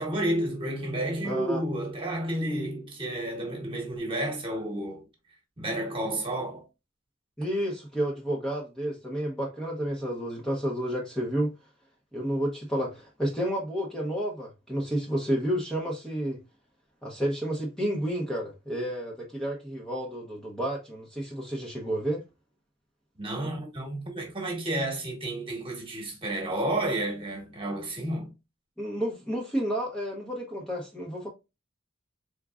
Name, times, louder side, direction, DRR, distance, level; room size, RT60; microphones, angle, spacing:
voice 1, 0.0-5.0 5.6-6.6 23.2-28.3, right 1 dB, 25° right, 1.4 m, -31 dB
voice 2, 1.2-1.6 7.4-11.5 12.1-16.4 17.0-22.2 28.8-31.3, equal, 5° left, 0.9 m, -30 dB
4.5 x 3.6 x 2.4 m
head